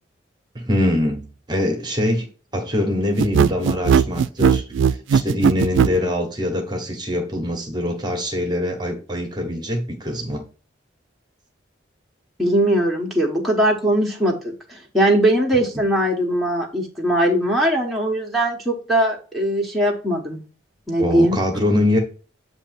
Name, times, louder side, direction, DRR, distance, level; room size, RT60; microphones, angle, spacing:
voice 1, 0.5-2.3 2.5-4.6 4.9-10.4 15.6-15.7 21.0-22.0, left 1 dB, 20° right, 4 dB, 1.0 m, -23 dB
sound 1, 3.2-6.0, right 6 dB, 80° right, 0.3 m, -17 dB
voice 2, 12.4-20.4 20.9-21.4, right 1 dB, ahead, -2 dB, 0.9 m, -20 dB
8.0 x 2.7 x 5.8 m, 0.38 s
head